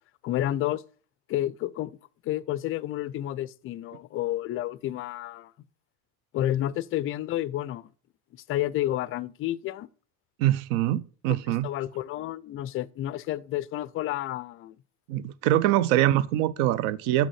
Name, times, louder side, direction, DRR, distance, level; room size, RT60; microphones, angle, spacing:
voice 1, 0.2-0.8 1.3-1.9 2.2-5.5 6.3-7.9 8.3-9.9 11.6-14.8, left 13 dB, 35° left, 0.4 m, -30 dB
voice 2, 10.4-11.7 15.1-17.3, right 13 dB, 55° right, 0.6 m, -24 dB
6.1 x 5.7 x 6.3 m
figure-of-eight pair, 60°, 42 cm